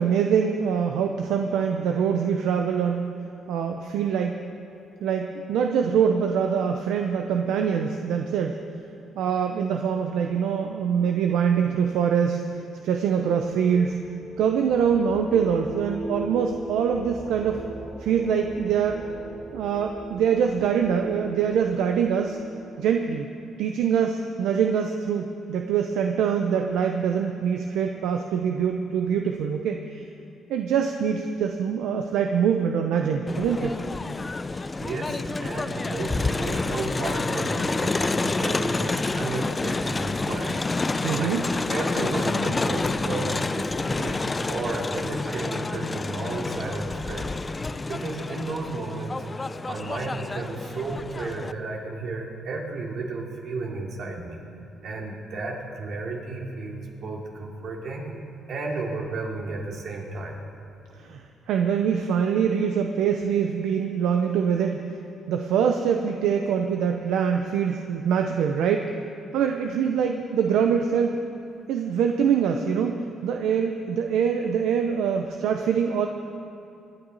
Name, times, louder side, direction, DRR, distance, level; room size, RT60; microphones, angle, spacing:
voice 1, 0.0-3.1 3.5-4.5 5.0-8.6 9.2-12.4 12.8-14.0 14.4-17.6 18.0-19.1 19.5-22.4 22.8-23.3 23.6-30.1 30.5-33.8 41.0-41.4 60.9-64.9 65.3-69.0 69.3-71.3 71.7-76.1, right 7 dB, 85° right, 4 dB, 0.7 m, -24 dB
sound 1, 12.8-23.4, right 1 dB, 5° right, 3.1 m, -40 dB
Crowd, 33.3-51.5, left 3 dB, 25° left, 0.4 m, -28 dB
voice 2, 34.8-40.9 41.1-44.2 44.5-47.3 47.9-49.1 49.7-54.4 54.8-58.1 58.5-60.3, right 3 dB, 65° right, -1 dB, 2.8 m, -33 dB
24.5 x 10.0 x 4.1 m, 2.8 s
cardioid pair, 100°, 0 cm